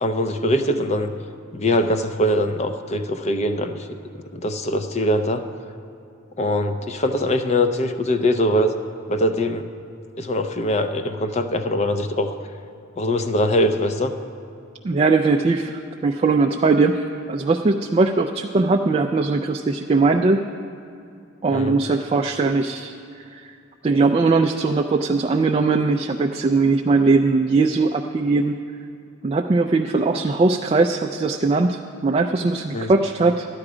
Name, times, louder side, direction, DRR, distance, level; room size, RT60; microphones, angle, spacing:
voice 1, 0.0-1.1 1.5-3.9 4.3-5.4 6.4-8.8 9.1-9.7 10.2-12.3 13.0-14.1 21.5-21.8 32.7-32.9, left 1 dB, 30° left, 8 dB, 0.6 m, -22 dB
voice 2, 14.8-20.4 21.4-22.9 23.3-23.5 23.8-28.6 29.2-33.5, right 3 dB, 30° right, 4 dB, 0.3 m, -20 dB
13.5 x 10.5 x 5.0 m, 2.6 s
head